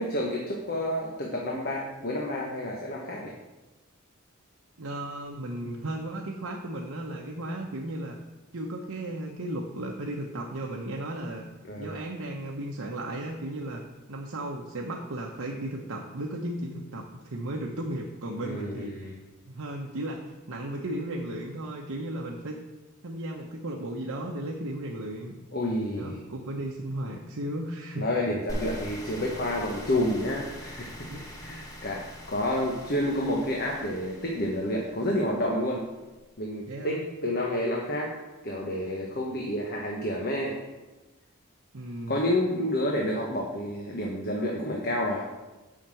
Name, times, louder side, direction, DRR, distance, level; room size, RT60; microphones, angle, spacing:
voice 1, 0.0-3.3 11.7-12.0 18.4-19.2 25.5-26.2 28.0-32.0 32.3-35.8 36.4-38.2 38.4-40.6 42.1-45.2, left 1 dB, 45° left, -1 dB, 1.2 m, -29 dB
voice 2, 4.8-8.2 8.5-11.5 11.8-13.8 14.1-18.9 19.5-22.6 23.0-25.4 25.8-28.0 31.1-31.4 36.7-37.0 41.7-42.2, right 1 dB, 75° right, 0 dB, 1.0 m, -35 dB
sound 1, 28.5-35.6, equal, 15° left, 1.4 m, -42 dB
7.4 x 5.8 x 7.7 m, 1.2 s
head